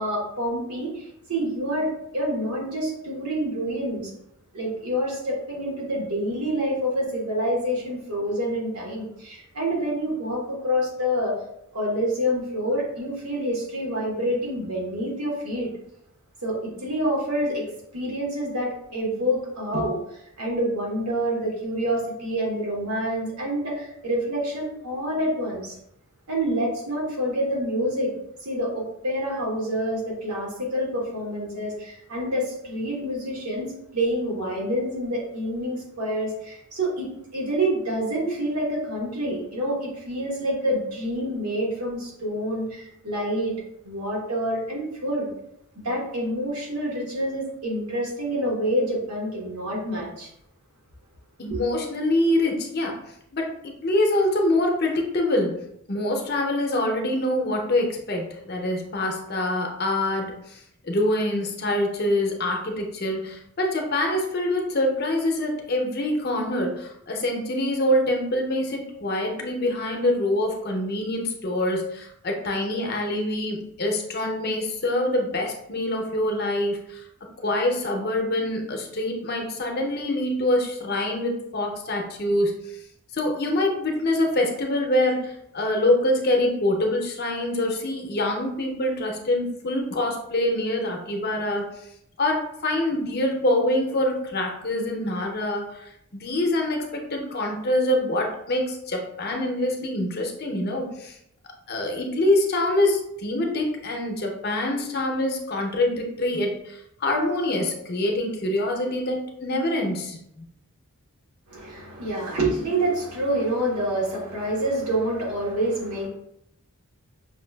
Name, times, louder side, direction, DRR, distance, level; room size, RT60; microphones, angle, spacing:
voice 1, 0.0-4.1 4.5-11.4 11.7-15.7 16.4-17.7 17.9-20.0 20.4-25.8 26.3-28.1 28.4-43.5 43.8-45.3 45.8-50.3 51.5-51.6 111.5-116.1, equal, 80° right, -3 dB, 1.2 m, -27 dB
voice 2, 51.4-53.0 53.3-55.6 55.9-77.0 77.4-82.8 83.1-91.7 92.2-101.2 101.7-110.4, left 1 dB, 45° left, 1 dB, 0.6 m, -25 dB
5.6 x 2.3 x 2.2 m, 0.76 s
head